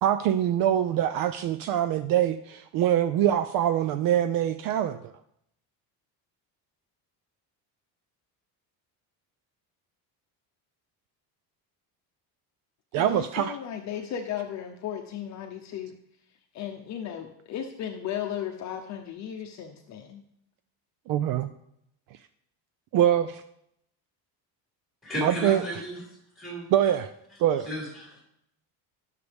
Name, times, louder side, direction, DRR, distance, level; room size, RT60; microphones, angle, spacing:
voice 1, 0.0-5.1 12.9-13.6 21.1-21.5 22.9-23.4 25.2-25.6 26.7-27.1 27.4-27.7, right 11 dB, 55° right, 11 dB, 0.5 m, -24 dB
voice 2, 13.0-15.9 16.5-20.2, left 9 dB, 45° left, 3 dB, 0.8 m, -35 dB
voice 3, 25.0-26.0 26.4-26.7 27.7-28.2, equal, ahead, -4 dB, 5.3 m, -33 dB
18.0 x 6.7 x 3.4 m, 0.74 s
cardioid pair, 175°, 40 cm